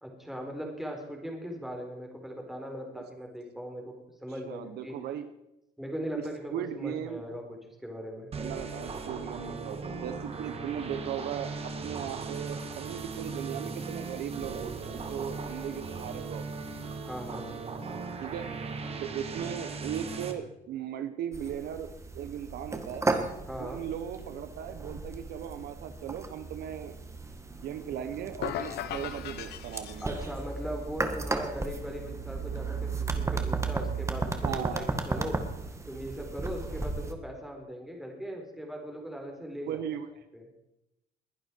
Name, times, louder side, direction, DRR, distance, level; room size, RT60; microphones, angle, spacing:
voice 1, 0.0-5.0 5.8-8.3 17.0-17.5 19.3-19.5 23.5-23.8 30.0-35.4 35.9-39.8 40.3-40.4, equal, ahead, 1 dB, 4.3 m, -39 dB
voice 2, 4.4-5.3 6.1-6.2 6.5-7.2 8.3-16.4 18.2-18.5 19.0-23.1 23.6-26.9 27.6-30.2 34.4-35.3 39.7-40.1, right 9 dB, 75° right, 10 dB, 1.2 m, -37 dB
sound 1, 8.3-20.3, right 4 dB, 35° right, 2.0 m, -38 dB
sound 2, 21.3-37.1, right 3 dB, 15° right, 1.7 m, -35 dB
sound 3, 28.4-30.5, left 11 dB, 75° left, 1.2 m, -37 dB
21.0 x 10.5 x 4.7 m, 0.88 s
cardioid pair, 110°, 17 cm